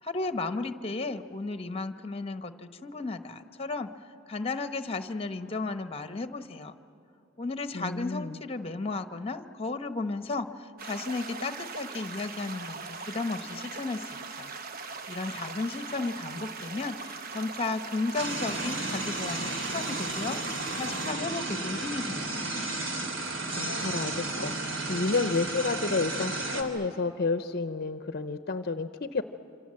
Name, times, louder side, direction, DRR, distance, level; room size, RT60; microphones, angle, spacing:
voice 1, 0.0-3.9 4.3-6.8 7.4-14.5 15.1-20.4 20.7-22.4, left 3 dB, 30° left, 9 dB, 1.0 m, -34 dB
voice 2, 7.7-8.4 23.2-29.2, left 3 dB, 50° left, 10 dB, 0.7 m, -31 dB
sound 1, 10.8-21.1, right 4 dB, 45° right, 1.0 m, -40 dB
sound 2, 18.1-26.6, right 2 dB, 70° right, 3.0 m, -33 dB
27.0 x 26.5 x 7.6 m, 3.0 s
head